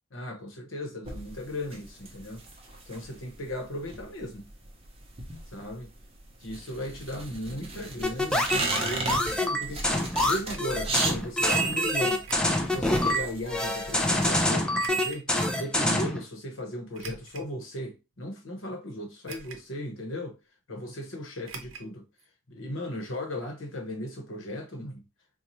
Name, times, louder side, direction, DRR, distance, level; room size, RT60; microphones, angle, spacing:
voice 1, 0.1-2.4 2.9-4.4 5.5-5.9 6.4-12.2 12.6-15.3 15.5-20.3 20.7-22.0 22.5-25.0, left 1 dB, 75° left, 1.0 m, -36 dB
sound 1, 1.1-14.4, right 2 dB, 30° right, 0.7 m, -37 dB
sound 2, 8.0-16.2, left 1 dB, 5° left, 0.3 m, -26 dB
sound 3, 10.2-10.7 12.2-12.7 13.3-13.4 14.8-15.2 16.9-17.5 18.1-18.2 19.3-19.8 20.0-20.1 21.5-21.9 22.2-22.3 22.6-22.7, right 5 dB, 75° right, 0.6 m, -44 dB
4.1 x 2.3 x 3.0 m
head